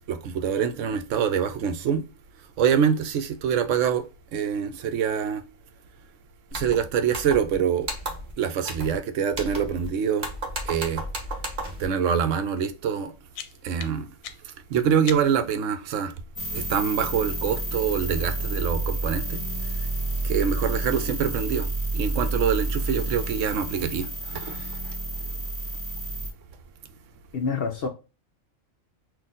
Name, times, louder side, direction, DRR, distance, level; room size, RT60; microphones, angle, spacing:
voice 1, 0.1-2.0 2.6-4.0 4.3-5.4 6.5-7.9 8.4-10.3 10.7-11.0 11.8-13.1 13.6-14.1 14.7-16.1 16.5-19.4 20.2-21.7 21.9-24.7, right 7 dB, 70° right, 0.9 m, -25 dB
sound 1, 6.5-6.8 7.1-7.5 7.8-8.3 8.6-9.0 9.3-9.9 10.2-11.9, right 1 dB, 40° right, 1.0 m, -33 dB
sound 2, 12.9-15.6, left 9 dB, 85° left, 1.0 m, -42 dB
sound 3, 16.4-26.3, right 2 dB, 30° left, 1.6 m, -30 dB
voice 2, 27.3-27.9, left 5 dB, 60° left, 0.6 m, -27 dB
4.1 x 2.6 x 3.6 m
omnidirectional pair, 1.4 m